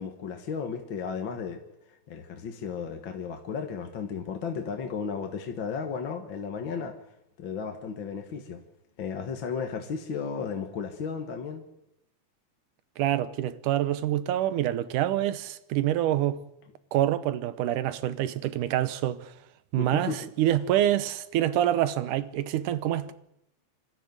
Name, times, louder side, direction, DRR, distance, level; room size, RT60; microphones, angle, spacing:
voice 1, 0.0-1.6 2.1-7.0 7.4-8.6 9.0-11.6 19.8-20.2, left 6 dB, 50° left, 1.8 m, -34 dB
voice 2, 13.0-16.4 16.9-19.3 19.7-23.1, right 12 dB, 90° right, 2.5 m, -26 dB
25.0 x 13.0 x 9.6 m
omnidirectional pair, 3.5 m